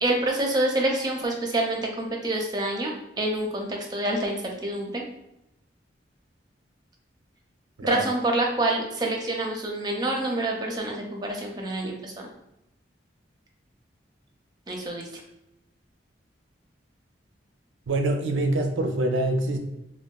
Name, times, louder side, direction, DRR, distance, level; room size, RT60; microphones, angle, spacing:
voice 1, 0.0-2.9 3.2-5.0 7.8-12.3 14.7-15.2, right 1 dB, 20° right, 1 dB, 0.5 m, -27 dB
voice 2, 17.9-19.6, right 2 dB, 90° right, 5 dB, 0.5 m, -25 dB
3.6 x 2.2 x 2.3 m, 0.87 s
head